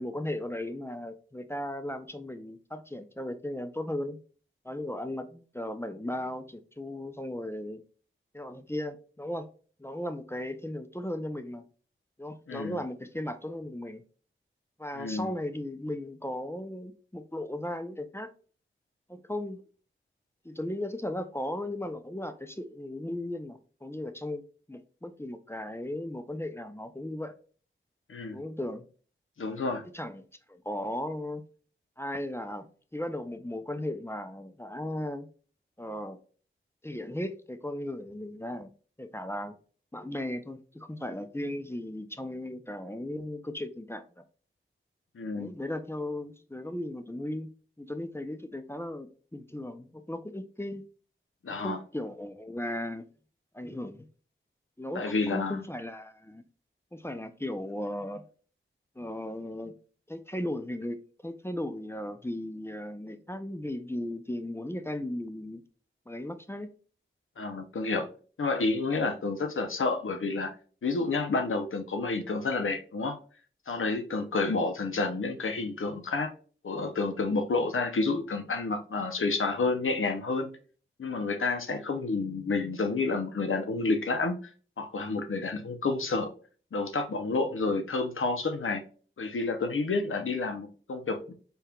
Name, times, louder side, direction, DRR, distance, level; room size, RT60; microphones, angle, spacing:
voice 1, 0.0-4.2 4.6-7.8 8.3-9.5 9.8-11.6 12.2-14.0 14.8-18.3 19.1-19.6 20.4-24.4 24.7-27.4 28.3-28.9 29.9-30.2 30.5-31.5 32.0-35.3 35.8-36.2 36.8-38.7 39.0-39.6 39.9-44.0 45.3-47.5 47.8-50.8 51.5-53.1 53.5-54.1 54.8-56.4 56.9-58.2 59.0-59.8 60.1-65.6 66.1-66.7, left 1 dB, 10° left, 0.5 m, -36 dB
voice 2, 12.5-12.8 14.9-15.3 28.1-28.4 29.4-29.8 45.2-45.5 51.4-51.8 54.9-55.6 67.4-68.1 68.4-70.5 70.8-73.2 73.7-76.3 76.6-80.5 81.0-84.5 84.8-86.3 86.7-88.8 89.2-91.3, left 3 dB, 75° left, 0.7 m, -29 dB
4.3 x 3.4 x 2.3 m
wide cardioid pair, 50°, 21 cm